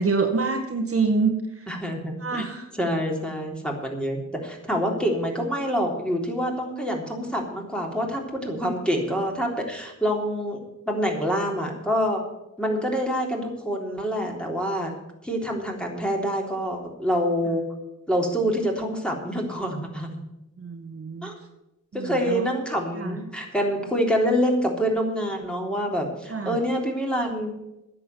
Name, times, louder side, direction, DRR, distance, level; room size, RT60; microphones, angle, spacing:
voice 1, 0.0-1.3 2.2-2.6 20.6-21.3 21.9-22.5 23.0-23.2 26.3-26.6, right 4 dB, 45° right, 3 dB, 1.9 m, -26 dB
voice 2, 1.7-2.5 2.7-10.6 10.8-12.2 12.6-14.9 15.2-17.6 18.1-20.2 21.2-21.3 21.9-27.5, equal, 5° left, 0 dB, 3.5 m, -26 dB
10.5 x 7.7 x 9.1 m, 0.92 s
cardioid pair, 75°, 31 cm